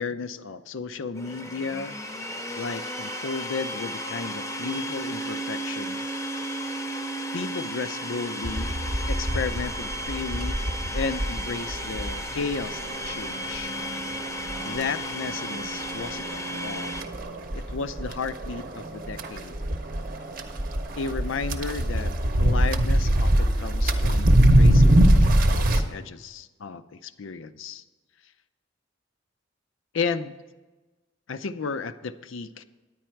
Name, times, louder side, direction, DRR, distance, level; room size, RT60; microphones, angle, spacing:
voice 1, 0.0-2.0 2.6-6.0 7.3-8.8 9.1-10.7 10.9-13.8 14.6-17.0 17.5-19.6 21.0-22.1 22.4-27.8 29.9-30.3 31.3-32.6, left 4 dB, 75° left, 13 dB, 0.5 m, -33 dB
Domestic sounds home sounds, 1.1-17.0, equal, 15° left, 0.7 m, -34 dB
sound 1, 8.4-25.8, right 1 dB, 45° right, 0.8 m, -24 dB
10.0 x 9.4 x 4.5 m, 1.2 s
head